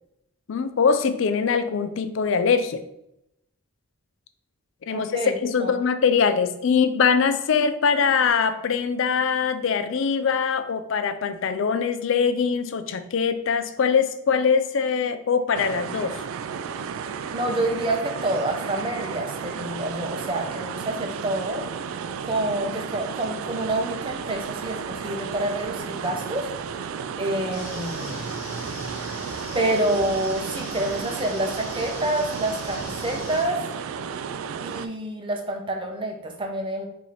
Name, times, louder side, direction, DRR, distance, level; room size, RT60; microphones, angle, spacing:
voice 1, 0.5-2.8 4.9-16.2, left 6 dB, 60° left, 10 dB, 0.4 m, -22 dB
voice 2, 4.9-5.3 5.6-5.8 17.3-21.6 22.2-26.5 27.2-28.3 29.5-33.6 34.6-36.9, right 1 dB, 25° right, 3 dB, 0.6 m, -27 dB
sound 1, 15.5-34.9, right 6 dB, 70° right, 0.3 m, -33 dB
sound 2, 27.5-33.4, left 2 dB, 85° left, 1.2 m, -40 dB
4.7 x 2.7 x 4.1 m, 0.81 s
head